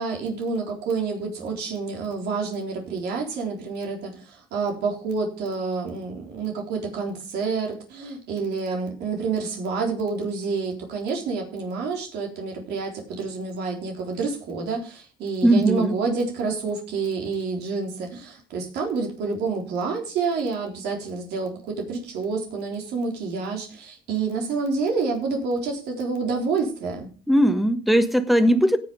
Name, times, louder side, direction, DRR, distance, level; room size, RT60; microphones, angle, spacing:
voice 1, 0.0-27.1, right 4 dB, 80° right, 0 dB, 3.8 m, -28 dB
voice 2, 15.4-16.0 27.3-28.8, equal, ahead, 9 dB, 1.4 m, -19 dB
17.0 x 6.2 x 5.1 m, 0.39 s
cardioid pair, 110°, 17 cm